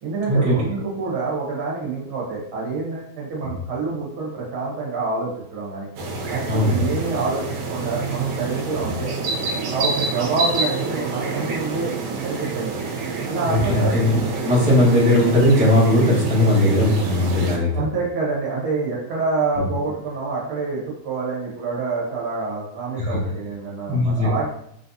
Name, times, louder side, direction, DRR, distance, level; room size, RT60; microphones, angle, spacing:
voice 1, 0.0-5.9 6.3-7.4 7.7-9.1 9.7-12.9 13.3-14.0 17.6-24.5, right 3 dB, 55° right, -5 dB, 1.6 m, -27 dB
sound 1, 6.0-17.6, right 4 dB, 70° right, 1.5 m, -27 dB
voice 2, 6.5-6.8 8.8-8.9 13.5-17.8 19.6-19.7 23.0-23.2 23.9-24.3, left 1 dB, 5° right, -8 dB, 0.7 m, -18 dB
4.6 x 4.2 x 2.7 m, 0.71 s
omnidirectional pair, 3.5 m